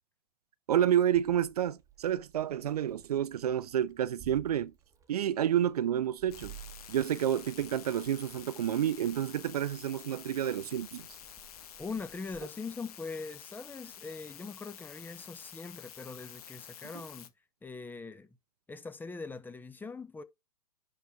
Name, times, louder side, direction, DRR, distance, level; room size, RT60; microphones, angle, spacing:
voice 1, 0.7-4.7 5.1-6.5 6.9-11.0, right 10 dB, 70° right, 0.7 m, -29 dB
Meow, 1.1-12.4, right 9 dB, 15° right, 1.5 m, -56 dB
sound 1, 6.3-17.3, left 10 dB, 65° left, 1.4 m, -50 dB
voice 2, 11.8-17.3 17.6-18.3 18.7-20.2, left 4 dB, 10° left, 1.0 m, -42 dB
10.5 x 4.2 x 4.7 m
hypercardioid pair, 110°, 21 cm